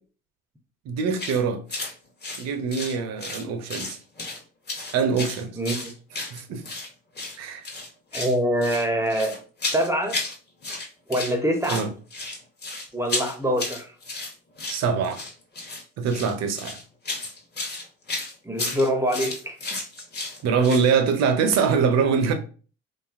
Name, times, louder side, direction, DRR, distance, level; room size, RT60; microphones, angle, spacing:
voice 1, 0.9-1.6 2.4-4.0 4.9-5.6 6.3-6.6 7.4-7.6 11.7-11.9 14.7-15.2 16.0-16.8 20.4-22.3, right 5 dB, 60° right, 0.6 m, -23 dB
sound 1, 1.2-1.4 1.7-1.9 2.2-3.4 3.7-4.4 4.7-6.9 7.1-7.4 7.6-8.4 8.6-10.4 10.6-11.3 11.6-20.9, left 3 dB, 35° left, 0.8 m, -33 dB
voice 2, 5.6-5.9 8.1-9.4 9.7-10.2 11.1-11.9 12.9-13.9 18.4-19.6, equal, 10° right, 0.5 m, -24 dB
2.7 x 2.3 x 2.4 m
hypercardioid pair, 60°, 31 cm